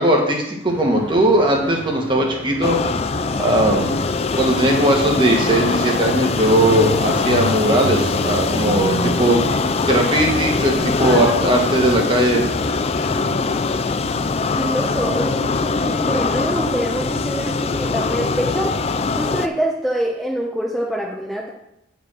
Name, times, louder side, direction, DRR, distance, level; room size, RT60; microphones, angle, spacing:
voice 1, 0.0-2.8 3.4-4.0 4.4-9.5 9.9-12.4, right 1 dB, 25° right, 0 dB, 1.6 m, -18 dB
sound 1, 0.7-13.4, equal, 65° left, 1.3 m, -30 dB
sound 2, 2.6-19.5, left 4 dB, 30° left, 0.3 m, -22 dB
voice 2, 11.0-11.4 13.1-13.5 14.5-18.8 19.2-21.5, equal, ahead, -4 dB, 0.9 m, -25 dB
9.1 x 5.2 x 6.2 m, 0.82 s
head